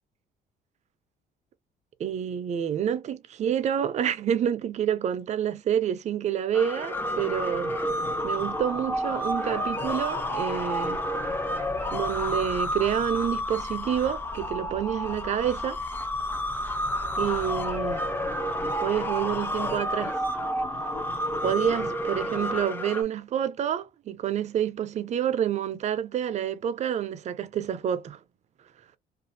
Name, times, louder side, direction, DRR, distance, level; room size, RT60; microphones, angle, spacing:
voice 1, 2.0-11.0 11.9-15.8 17.2-18.1 18.8-20.2 21.4-28.2, right 9 dB, 45° right, 0.5 m, -28 dB
sound 1, 6.5-23.0, equal, 10° left, 0.6 m, -30 dB
2.5 x 2.3 x 2.6 m
cardioid pair, 110°, 17 cm